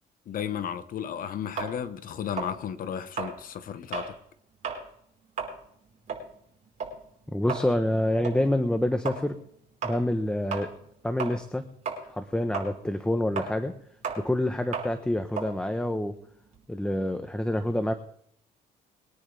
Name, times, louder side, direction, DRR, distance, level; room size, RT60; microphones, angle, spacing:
voice 1, 0.3-4.1, left 8 dB, 55° left, 1.3 m, -34 dB
sound 1, 1.6-4.2 4.5-4.9 5.2-11.6 11.8-16.6, right 5 dB, 45° right, 5.1 m, -36 dB
voice 2, 7.3-9.4 9.8-10.7 11.0-11.6 12.1-13.7 14.2-16.1 16.7-17.9, left 1 dB, 5° left, 1.0 m, -27 dB
23.0 x 10.0 x 3.4 m
cardioid pair, 110°, 17 cm